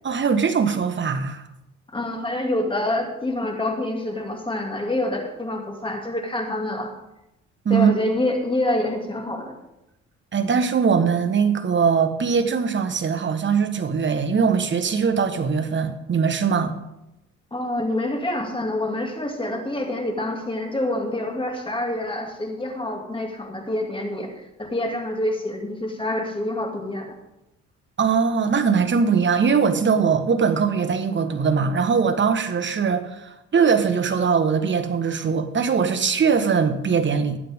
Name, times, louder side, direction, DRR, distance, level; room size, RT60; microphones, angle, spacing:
voice 1, 0.0-1.4 7.6-8.0 10.3-16.7 28.0-37.4, right 6 dB, 40° right, 8 dB, 1.3 m, -21 dB
voice 2, 1.9-6.9 7.7-9.5 17.5-24.3 24.6-27.1, left 1 dB, 15° left, 2 dB, 2.5 m, -26 dB
21.0 x 7.7 x 3.7 m, 0.88 s
cardioid pair, 90°, 30 cm